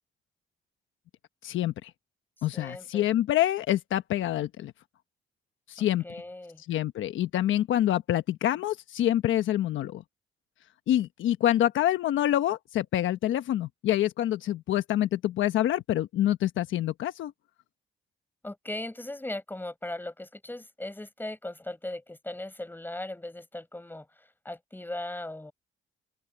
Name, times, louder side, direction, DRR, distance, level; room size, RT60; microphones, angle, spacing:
voice 1, 1.4-1.9 2.4-4.7 5.7-6.2 6.7-10.0 10.9-17.3, left 12 dB, 80° left, 1.1 m, -26 dB
voice 2, 2.5-3.1 6.0-6.6 18.4-25.5, left 1 dB, 10° left, 5.0 m, -38 dB
cardioid pair, 90°, 20 cm